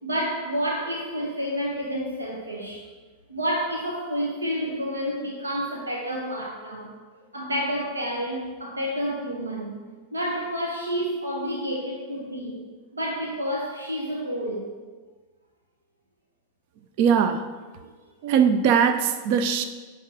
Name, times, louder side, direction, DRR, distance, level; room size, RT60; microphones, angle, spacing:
voice 1, 0.0-2.9 3.3-6.9 7.3-9.7 10.1-12.6 12.9-14.7, equal, 75° right, 0 dB, 1.1 m, -29 dB
voice 2, 17.0-17.5 18.2-19.6, right 7 dB, 45° right, 9 dB, 0.6 m, -20 dB
10.0 x 3.6 x 6.0 m, 1.4 s
figure-of-eight pair, 90°, 0 cm